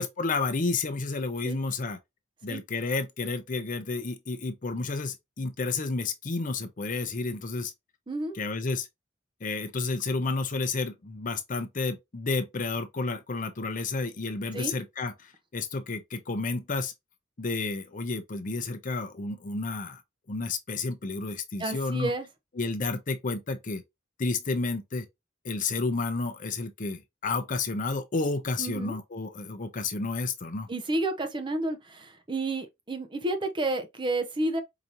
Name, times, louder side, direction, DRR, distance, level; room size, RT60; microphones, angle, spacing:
voice 1, 0.0-2.0 2.4-7.7 8.3-8.9 9.4-16.9 17.4-20.0 20.3-22.1 22.6-23.8 24.2-25.1 25.4-30.7, left 3 dB, 45° left, 0.6 m, -31 dB
voice 2, 21.6-22.3 28.6-29.0 30.7-34.6, right 2 dB, 25° right, 0.7 m, -30 dB
4.9 x 2.8 x 2.6 m
head